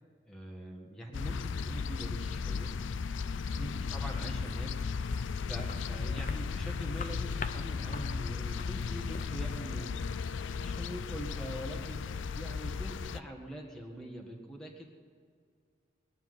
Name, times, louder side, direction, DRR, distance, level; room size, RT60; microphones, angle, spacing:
voice 1, 0.3-2.7 3.5-14.9, equal, 5° left, -1 dB, 1.6 m, -44 dB
sound 1, 1.1-13.2, left 5 dB, 80° left, 0.5 m, -35 dB
sound 2, 5.0-11.0, left 4 dB, 45° left, 0.6 m, -45 dB
21.0 x 7.0 x 9.5 m, 2.1 s
head